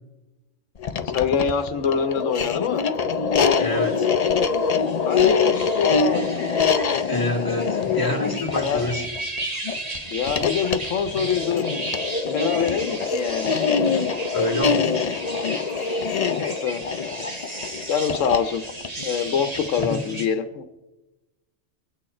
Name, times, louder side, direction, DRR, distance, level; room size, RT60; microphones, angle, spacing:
sound 1, 0.8-20.0, left 5 dB, 45° left, 0.5 m, -24 dB
voice 1, 1.1-2.8 5.1-6.5 8.6-8.9 10.1-11.7 12.2-13.6 16.3-17.3 17.9-18.6 19.0-20.6, left 7 dB, 85° left, 9 dB, 1.1 m, -25 dB
sound 2, 3.5-20.3, right 2 dB, 30° right, 1.4 m, -36 dB
voice 2, 3.6-4.1 7.1-9.0 14.3-14.9 19.8-20.0, left 1 dB, 15° left, 2 dB, 2.1 m, -26 dB
23.5 x 8.7 x 4.3 m, 1.0 s
omnidirectional pair, 1.3 m